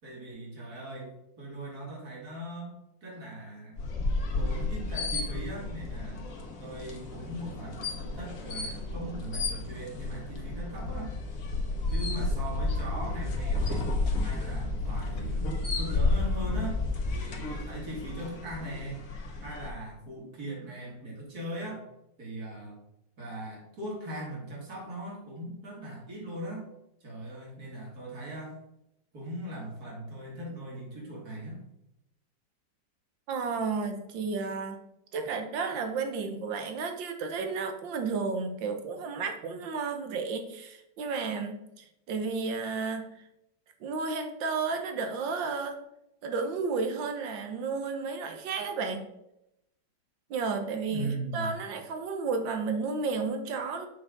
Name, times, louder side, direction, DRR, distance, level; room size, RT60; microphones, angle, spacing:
voice 1, 0.0-2.7 3.0-3.7 4.3-6.3 6.6-11.1 11.9-13.9 14.2-16.8 17.1-19.1 19.4-21.8 22.2-22.8 23.2-26.6 27.0-28.6 29.1-31.6 50.9-51.5, right 1 dB, 55° right, -3 dB, 3.0 m, -39 dB
sound 1, 3.8-19.7, left 3 dB, 50° left, 1.6 m, -32 dB
voice 2, 33.3-34.8 35.1-43.1 43.8-45.8 46.2-49.1 50.3-53.9, right 4 dB, 85° right, 6 dB, 1.7 m, -32 dB
7.8 x 5.9 x 3.9 m, 0.83 s
omnidirectional pair, 2.0 m